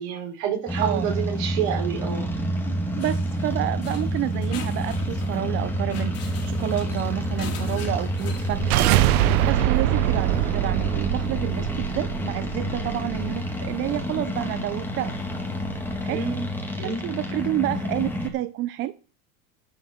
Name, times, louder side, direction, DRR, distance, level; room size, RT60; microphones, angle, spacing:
voice 1, 0.0-2.3 16.1-16.5 16.8-17.0, right 7 dB, 60° right, 4.4 m, -28 dB
sound 1, 0.7-18.3, equal, 5° left, 2.2 m, -29 dB
voice 2, 2.7-8.9 9.4-15.2 16.0-16.2 16.8-18.9, right 14 dB, 30° right, 0.5 m, -29 dB
sound 2, 3.0-9.1, left 7 dB, 35° left, 3.1 m, -42 dB
sound 3, 8.3-13.4, right 16 dB, 75° right, 0.8 m, -24 dB
11.5 x 5.6 x 7.6 m
supercardioid pair, 130°, 44 cm